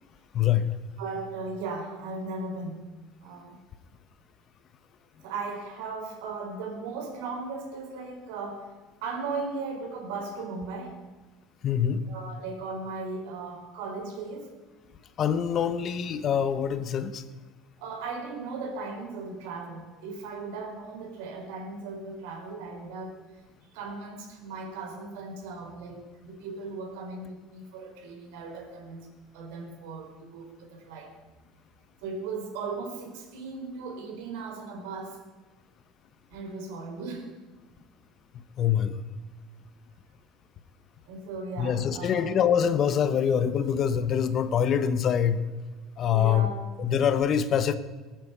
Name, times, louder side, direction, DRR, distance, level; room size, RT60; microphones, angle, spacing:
voice 1, 0.3-0.7 11.6-12.0 15.2-17.2 38.6-39.0 41.6-45.4 46.0-46.5 46.8-47.7, left 8 dB, 35° left, 1.0 m, -24 dB
voice 2, 1.0-2.8 3.2-3.6 5.2-8.7 9.0-11.0 12.1-14.5 17.8-23.2 23.7-31.2 32.0-35.2 36.3-37.3 41.1-42.3 46.1-46.5, right 4 dB, 80° right, 4.3 m, -37 dB
18.5 x 9.3 x 8.2 m
cardioid pair, 150°, 0 cm